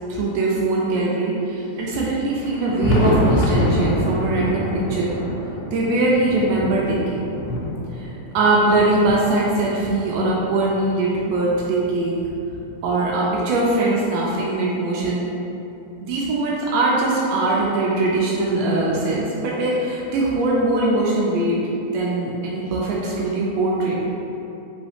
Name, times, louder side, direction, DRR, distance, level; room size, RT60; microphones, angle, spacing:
voice 1, 0.1-5.1 5.7-7.2 7.9-12.2 12.8-15.3 16.0-21.6 21.9-24.0, right 2 dB, 90° right, -5 dB, 1.5 m, -21 dB
Thunder, 2.3-10.9 11.5-13.2 14.4-14.5 15.0-15.1 17.0-17.1 18.4-18.5 20.1-20.2, equal, 80° left, 2.1 m, -26 dB
5.0 x 3.1 x 3.3 m, 2.8 s
omnidirectional pair, 3.7 m